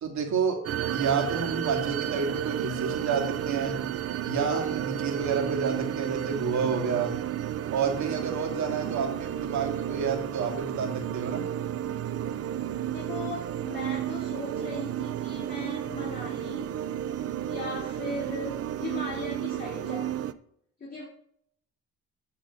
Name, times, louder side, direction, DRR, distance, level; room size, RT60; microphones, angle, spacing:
voice 1, 0.0-0.6 0.9-3.8 4.2-7.1 7.7-11.5, right 5 dB, 70° right, 2 dB, 2.4 m, -29 dB
sound 1, 0.6-20.3, right 11 dB, 50° right, 0.6 m, -32 dB
voice 2, 12.9-16.7 17.5-20.2 20.8-21.1, left 2 dB, 30° left, -5 dB, 3.1 m, -38 dB
10.0 x 4.0 x 6.9 m, 0.68 s
cardioid pair, 90°, 30 cm